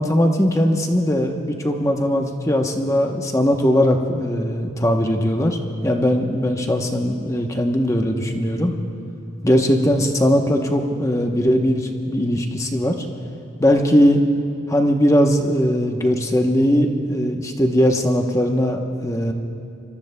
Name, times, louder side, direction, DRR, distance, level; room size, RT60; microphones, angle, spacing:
voice 1, 0.0-5.6 5.8-8.7 9.4-13.0 13.6-14.2 14.7-19.3, equal, 15° left, 3 dB, 0.8 m, -19 dB
24.5 x 21.5 x 2.2 m, 2.7 s
head